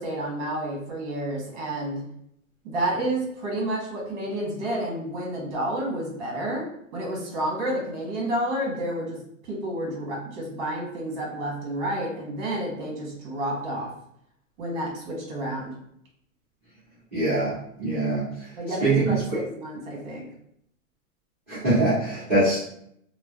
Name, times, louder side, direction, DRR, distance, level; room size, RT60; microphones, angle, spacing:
voice 1, 0.0-2.1 2.6-9.2 9.5-13.9 14.6-15.7 18.6-20.3, right 1 dB, 35° right, -2 dB, 1.0 m, -30 dB
voice 2, 17.1-18.3 18.8-19.2 21.5-22.6, right 2 dB, 10° right, -18 dB, 0.3 m, -23 dB
3.1 x 2.0 x 2.3 m, 0.72 s
hypercardioid pair, 160°, 41 cm